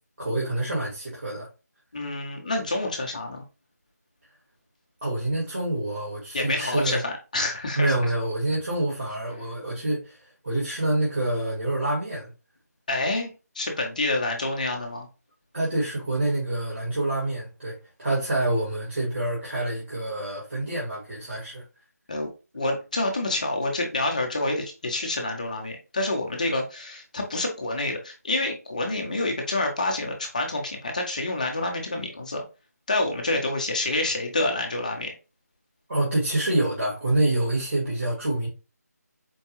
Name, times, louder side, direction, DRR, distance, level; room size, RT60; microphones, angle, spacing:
voice 1, 0.2-1.5 5.0-7.0 7.8-10.2 10.4-12.3 15.5-21.6 35.9-38.5, right 1 dB, 45° right, 1.7 m, -27 dB
voice 2, 1.9-3.4 6.3-8.1 12.9-13.3 13.5-15.1 22.1-32.4 32.9-35.1, left 2 dB, 25° left, 0.6 m, -28 dB
4.5 x 2.3 x 2.9 m
figure-of-eight pair, 170°, 9 cm